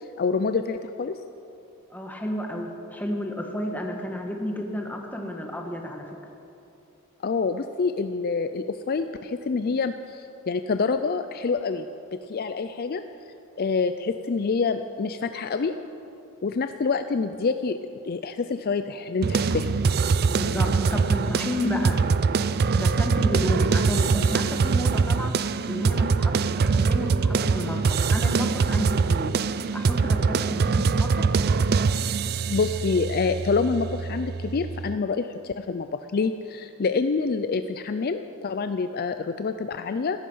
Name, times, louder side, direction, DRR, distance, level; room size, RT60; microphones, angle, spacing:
voice 1, 0.2-1.2 7.2-11.9 12.1-13.0 13.6-15.7 16.4-17.8 18.0-19.7 32.5-35.9 36.1-40.2, left 4 dB, 45° left, 9 dB, 0.4 m, -27 dB
voice 2, 1.9-6.2 20.3-22.0 22.7-25.4 25.7-29.3 29.7-31.3, equal, 5° left, 2 dB, 1.4 m, -31 dB
sound 1, 19.2-34.9, right 4 dB, 45° right, 0.4 m, -23 dB
16.5 x 13.5 x 5.5 m, 2.8 s
head